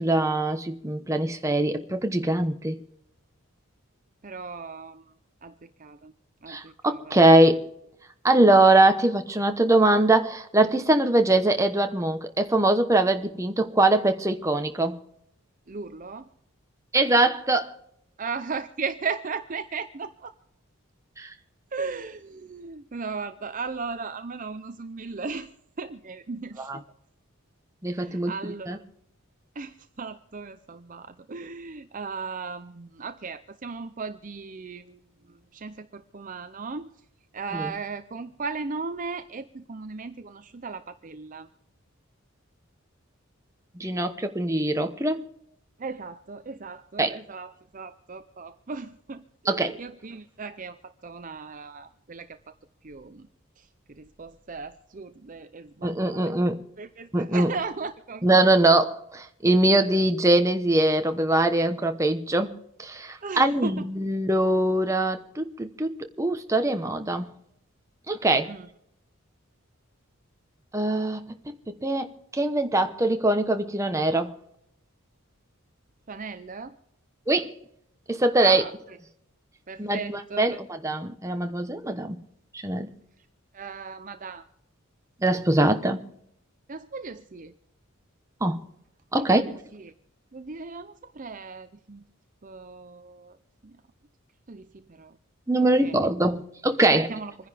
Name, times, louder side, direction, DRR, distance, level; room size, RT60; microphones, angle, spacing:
voice 1, 0.0-2.8 6.5-7.7 8.2-15.0 16.9-17.7 21.2-21.3 26.6-26.8 27.8-28.8 37.5-37.7 43.7-45.2 47.0-47.2 49.5-49.8 55.8-56.6 57.1-57.5 58.2-62.5 62.8-67.3 68.1-68.5 70.7-71.4 71.7-74.4 77.3-77.5 78.1-78.6 79.8-82.2 82.5-82.9 85.2-86.0 88.4-88.6 89.1-89.4 95.5-97.1, right 2 dB, 15° right, 1.0 m, -22 dB
voice 2, 4.2-5.1 5.4-6.1 6.4-7.2 15.7-16.3 18.2-20.3 21.7-25.5 25.8-26.8 28.0-28.8 29.6-35.0 35.3-36.9 37.3-41.5 45.8-52.4 52.8-53.3 53.6-56.2 56.8-58.3 63.2-63.9 68.5-68.7 76.1-76.8 78.4-79.0 79.7-80.6 83.5-84.4 86.7-87.5 89.2-89.9 90.3-92.1 92.4-93.4 93.6-93.7 94.5-95.2 95.8-96.0 96.9-97.5, right 4 dB, 40° right, 0.6 m, -37 dB
27.0 x 10.5 x 3.5 m
head